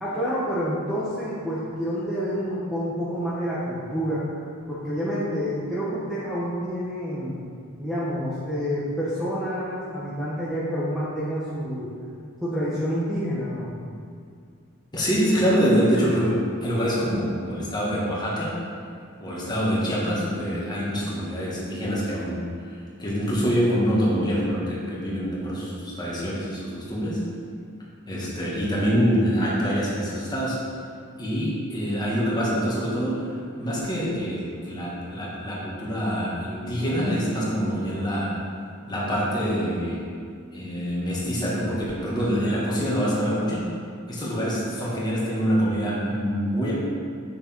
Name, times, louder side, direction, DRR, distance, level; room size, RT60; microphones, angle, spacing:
voice 1, 0.0-4.2 4.7-7.4 7.8-11.9 12.4-13.7, equal, ahead, -10 dB, 1.1 m, -28 dB
voice 2, 14.9-18.5 19.2-27.2 28.1-30.7 31.2-38.3 38.9-40.0 40.5-43.7 44.1-46.7, equal, 20° left, -6 dB, 1.8 m, -25 dB
7.4 x 6.4 x 4.5 m, 2.3 s
head